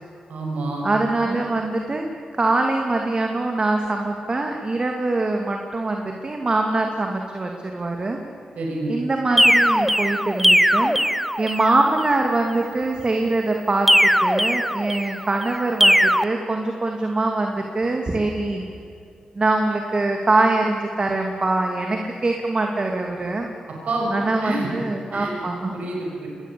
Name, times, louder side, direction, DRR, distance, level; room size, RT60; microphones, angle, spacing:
voice 1, 0.3-0.9 1.2-1.4 8.5-8.9 23.9-24.7 25.1-25.3 25.7-26.3, right 2 dB, 75° right, -1 dB, 6.1 m, -27 dB
voice 2, 0.8-8.2 8.9-11.0 11.4-18.6 19.4-23.5 24.1-25.7, right 2 dB, 35° right, 2 dB, 2.5 m, -23 dB
sound 1, 9.4-11.8 13.9-15.2 15.8-16.2, equal, ahead, 0.8 m, -18 dB
23.5 x 20.0 x 8.5 m, 2.5 s
cardioid pair, 65°, 2 cm